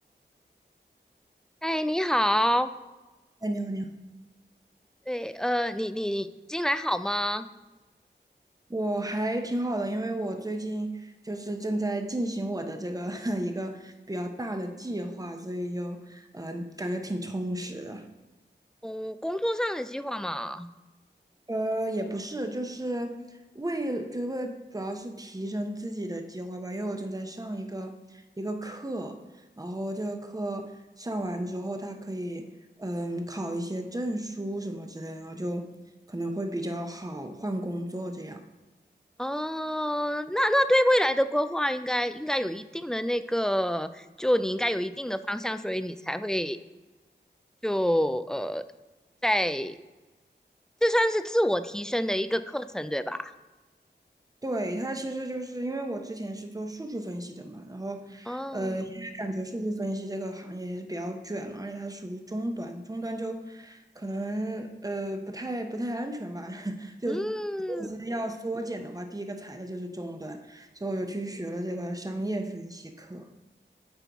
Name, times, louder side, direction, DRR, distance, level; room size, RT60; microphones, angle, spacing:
voice 1, 1.6-2.7 5.1-7.4 18.8-20.7 39.2-46.6 47.6-48.6 49.2-49.8 50.8-53.3 58.3-58.8 67.1-67.9, equal, 5° left, 11 dB, 0.3 m, -27 dB
voice 2, 3.4-3.9 8.7-18.1 21.5-29.2 29.6-35.8 36.1-38.4 54.4-67.3 67.7-73.3, right 1 dB, 20° right, 5 dB, 0.8 m, -33 dB
7.8 x 4.5 x 3.5 m, 1.2 s
wide cardioid pair, 50°, 19 cm